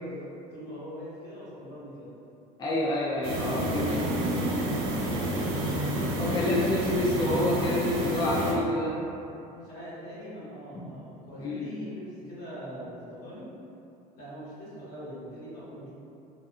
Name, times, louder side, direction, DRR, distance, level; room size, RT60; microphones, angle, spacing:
voice 1, 0.0-2.1 3.4-5.8 6.3-7.1 9.4-13.5 14.2-15.9, equal, 70° left, -11 dB, 1.4 m, -42 dB
voice 2, 2.6-4.0 6.2-9.0 10.7-10.8 11.4-11.7, left 1 dB, 20° left, -6 dB, 0.4 m, -28 dB
sound 1, 3.2-8.5, right 1 dB, 85° right, 0.5 m, -29 dB
2.8 x 2.2 x 2.4 m, 2.8 s
supercardioid pair, 85°, 18 cm